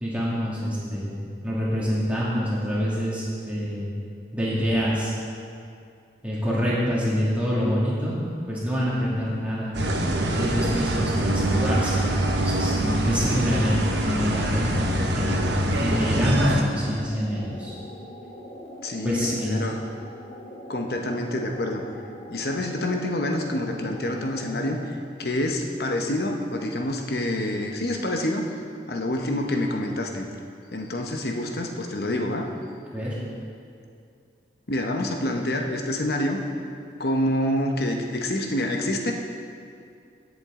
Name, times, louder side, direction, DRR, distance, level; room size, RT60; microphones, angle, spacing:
voice 1, 0.0-3.9 4.3-5.1 6.2-8.1 8.5-12.0 12.4-14.9 15.2-15.4 15.7-17.8 19.0-19.6 32.9-33.2, equal, 10° right, -8 dB, 2.4 m, -26 dB
sound 1, 9.7-16.6, right 1 dB, 75° right, 1.0 m, -24 dB
sound 2, 15.3-24.9, equal, 30° left, 1.6 m, -42 dB
voice 2, 18.8-19.8 20.7-21.8 22.3-24.9 25.2-28.4 28.9-30.3 30.7-32.5 34.7-36.4 37.0-39.1, left 1 dB, 60° left, 2 dB, 1.0 m, -27 dB
16.0 x 7.3 x 3.8 m, 2.4 s
head